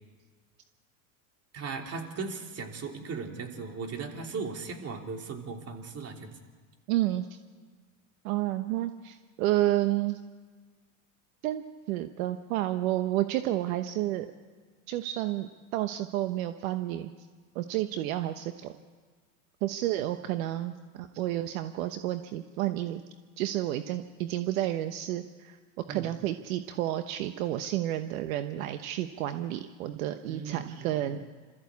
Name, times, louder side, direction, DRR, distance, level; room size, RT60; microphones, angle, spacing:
voice 1, 1.5-6.3 25.9-26.1 30.3-31.2, right 4 dB, 35° right, 3 dB, 3.3 m, -38 dB
voice 2, 6.9-7.4 8.2-10.2 11.4-14.3 14.9-17.1 17.5-18.7 19.6-23.0 23.4-25.6 25.9-31.3, right 14 dB, 70° right, 9 dB, 1.1 m, -30 dB
27.0 x 14.0 x 8.4 m, 1.5 s
hypercardioid pair, 105°, 43 cm